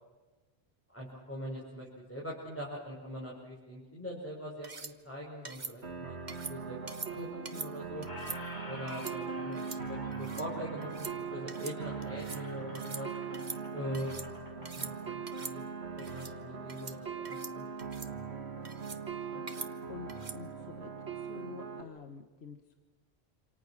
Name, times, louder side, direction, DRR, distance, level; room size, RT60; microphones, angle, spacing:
voice 1, 0.9-8.1 8.6-13.1 13.7-14.1 14.6-15.6 16.0-17.6, equal, 10° left, -5 dB, 5.7 m, -42 dB
sound 1, 4.6-4.9 5.5-5.7 6.3-6.6 6.9-7.1 7.5-7.7 8.0-8.4 8.9-9.2 9.5-9.8 10.1-10.5 10.8-11.1 11.5-11.8 12.0-12.4 12.8-13.0 13.3-14.3 14.6-14.9 15.3-15.6 16.0-16.3 16.7-17.0 17.3-17.5 17.8-18.1 18.7-19.0 19.5-19.7 20.1-20.4, right 4 dB, 45° right, 1.4 m, -43 dB
sound 2, 5.8-21.8, right 5 dB, 75° right, 2.4 m, -40 dB
Squeak, 7.1-7.6 7.9-15.5, left 1 dB, 45° left, 3.1 m, -50 dB
voice 2, 19.3-20.9 21.2-22.7, left 6 dB, 70° left, 6 dB, 1.6 m, -48 dB
27.5 x 27.5 x 6.4 m, 1.2 s
omnidirectional pair, 1.1 m